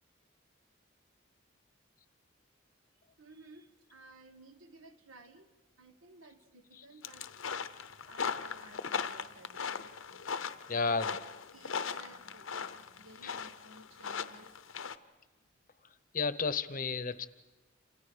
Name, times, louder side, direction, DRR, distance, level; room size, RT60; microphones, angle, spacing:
voice 1, 3.2-7.3 8.1-10.9 11.5-14.5, right 2 dB, 80° right, 9 dB, 1.4 m, -57 dB
sound 1, 7.0-15.0, left 6 dB, 80° left, 0.8 m, -39 dB
voice 2, 10.7-11.2 13.2-13.4 16.1-17.2, left 4 dB, 40° left, 13 dB, 0.8 m, -32 dB
29.5 x 27.5 x 5.1 m, 1.2 s
head